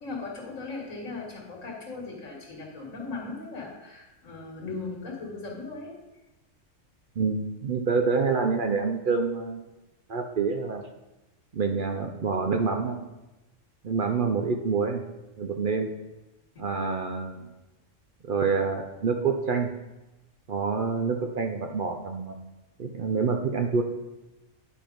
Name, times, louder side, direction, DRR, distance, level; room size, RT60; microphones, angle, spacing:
voice 1, 0.0-5.9 16.6-16.7, left 3 dB, 85° left, -1 dB, 1.9 m, -38 dB
voice 2, 7.2-9.7 10.1-10.9 11.5-13.0 13.8-15.0 15.4-15.9 16.6-17.4 18.2-19.7 20.5-22.4 22.8-23.8, right 5 dB, 55° right, 5 dB, 0.7 m, -27 dB
10.0 x 4.5 x 5.1 m, 1.0 s
omnidirectional pair, 1.3 m